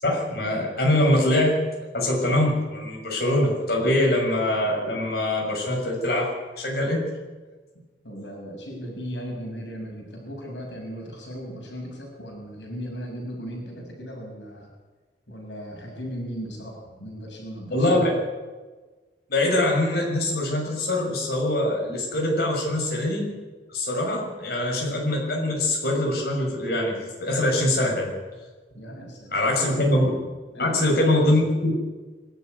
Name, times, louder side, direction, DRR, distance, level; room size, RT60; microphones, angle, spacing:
voice 1, 0.0-1.6 1.9-7.0 17.7-18.1 19.3-23.2 23.7-28.1 29.3-30.0 30.5-31.8, left 1 dB, 60° left, -2 dB, 6.8 m, -23 dB
voice 2, 7.7-14.7 15.3-18.1 28.7-29.8 30.2-31.4, equal, 80° left, 0 dB, 6.8 m, -37 dB
25.0 x 12.5 x 9.6 m, 1.3 s
head